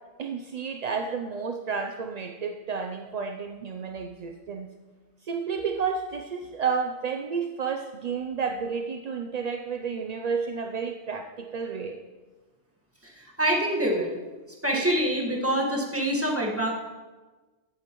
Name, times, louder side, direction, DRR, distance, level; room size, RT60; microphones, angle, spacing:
voice 1, 0.2-4.7 5.2-12.0, right 5 dB, 55° right, 4 dB, 0.4 m, -31 dB
voice 2, 13.0-14.2 14.6-16.7, right 1 dB, 10° right, -2 dB, 1.5 m, -26 dB
14.5 x 8.5 x 3.0 m, 1.3 s
omnidirectional pair, 1.2 m